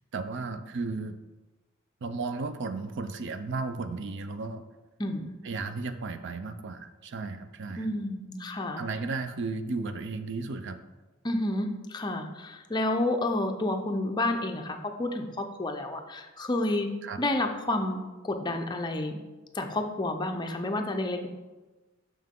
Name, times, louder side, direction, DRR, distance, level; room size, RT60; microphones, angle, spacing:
voice 1, 0.1-1.2 2.0-4.6 5.4-7.9 8.8-10.8 17.0-17.2, right 3 dB, 60° right, 10 dB, 0.5 m, -34 dB
voice 2, 5.0-5.3 7.8-8.8 11.2-16.9 17.2-19.2 19.5-21.3, left 1 dB, 20° left, 4 dB, 0.6 m, -30 dB
6.3 x 5.7 x 3.7 m, 1.2 s
head